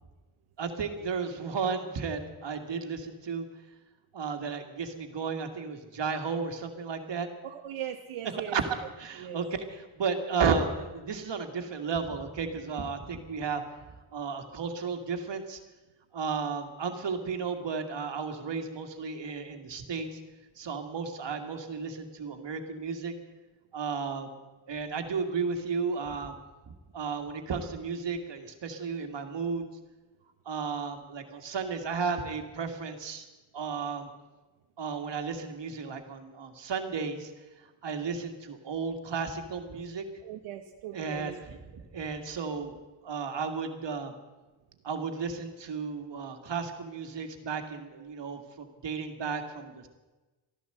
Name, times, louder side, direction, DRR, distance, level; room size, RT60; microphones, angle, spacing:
voice 1, 0.6-3.5 4.1-7.3 8.5-8.7 9.0-13.6 14.1-15.6 16.1-20.2 20.6-23.1 23.7-24.3 24.7-26.4 26.9-29.6 30.5-33.3 33.5-34.1 34.8-37.3 37.6-40.0 40.9-42.8 43.0-44.1 44.8-49.9, right 5 dB, 60° right, 5 dB, 2.2 m, -33 dB
voice 2, 7.4-8.6 9.2-9.4 40.2-41.3, right 11 dB, 85° right, 4 dB, 1.0 m, -39 dB
14.0 x 11.5 x 7.9 m, 1.2 s
cardioid pair, 65°, 48 cm